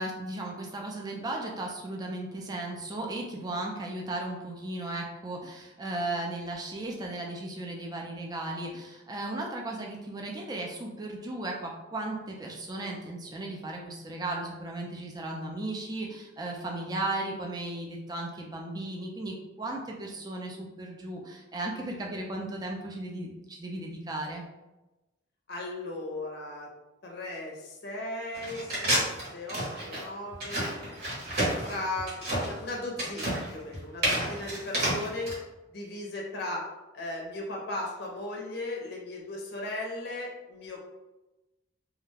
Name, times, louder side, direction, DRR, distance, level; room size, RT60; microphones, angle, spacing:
voice 1, 0.0-24.4, right 2 dB, 20° right, 0 dB, 0.3 m, -36 dB
voice 2, 25.5-26.7 27.0-29.0 29.3-30.7 31.6-35.3 35.7-36.6 36.9-40.8, left 2 dB, 55° left, -1 dB, 0.5 m, -37 dB
sound 1, 28.3-35.3, right 1 dB, 50° right, 0.9 m, -30 dB
2.3 x 2.1 x 3.1 m, 1.0 s
head